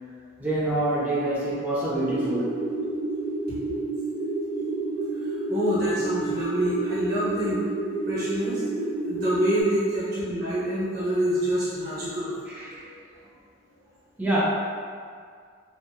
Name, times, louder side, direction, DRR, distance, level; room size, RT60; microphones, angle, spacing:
voice 1, 0.4-2.6 12.5-12.9 14.2-14.4, right 1 dB, 10° right, -10 dB, 0.5 m, -26 dB
sound 1, 2.0-9.6, right 3 dB, 60° left, 0.6 m, -30 dB
voice 2, 5.5-7.6 8.0-8.6 9.1-12.7, equal, 55° right, -10 dB, 1.0 m, -26 dB
2.8 x 2.1 x 2.3 m, 2.1 s
head